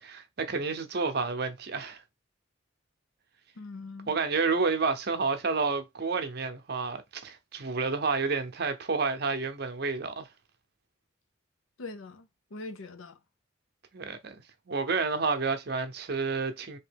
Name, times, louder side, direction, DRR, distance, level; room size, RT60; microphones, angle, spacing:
voice 1, 0.0-2.0 4.1-10.3 13.9-16.8, right 4 dB, 50° right, 0.7 m, -30 dB
voice 2, 3.6-4.2 11.8-13.2, left 3 dB, 90° left, 0.6 m, -42 dB
3.7 x 2.9 x 3.4 m
head